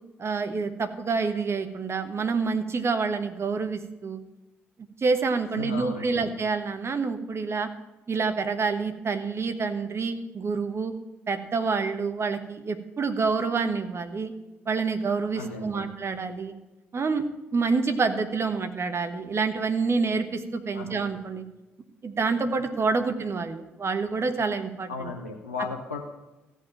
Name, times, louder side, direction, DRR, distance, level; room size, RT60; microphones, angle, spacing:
voice 1, 0.2-4.2 5.0-7.7 8.1-10.9 11.3-14.3 14.6-16.5 16.9-17.3 17.5-21.4 22.0-25.1, right 4 dB, 40° right, 8 dB, 1.3 m, -27 dB
voice 2, 5.6-6.3 15.3-15.9 20.7-21.0 24.9-26.0, left 4 dB, 90° left, 1 dB, 0.7 m, -35 dB
14.5 x 5.6 x 8.8 m, 1.0 s
figure-of-eight pair, 40°, 7 cm